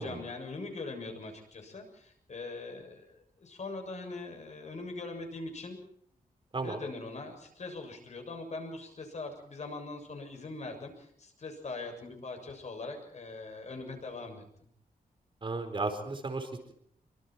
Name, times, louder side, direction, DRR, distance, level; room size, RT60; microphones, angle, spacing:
voice 1, 0.0-5.8 6.6-14.4, left 3 dB, 50° left, 5 dB, 6.9 m, -42 dB
voice 2, 15.4-16.7, right 3 dB, 35° right, 5 dB, 4.5 m, -35 dB
26.0 x 25.0 x 4.6 m, 0.67 s
wide cardioid pair, 135°, 14 cm